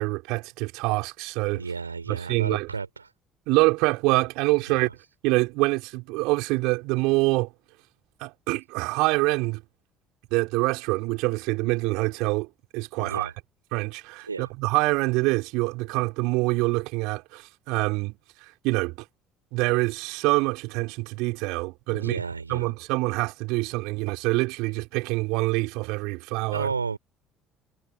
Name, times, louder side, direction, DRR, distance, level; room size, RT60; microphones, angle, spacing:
voice 1, 0.0-1.6 2.1-2.7 3.5-4.9 5.2-7.5 8.2-9.6 10.3-12.5 12.7-13.3 13.7-18.2 18.6-18.9 19.5-22.2 22.5-26.7, right 24 dB, 65° right, 3.6 m, -25 dB
voice 2, 1.5-3.1 4.7-4.9 13.0-13.3 14.3-14.5 21.9-22.7 26.5-27.0, right 5 dB, 85° right, 3.4 m, -32 dB
figure-of-eight pair, 55°, 0 cm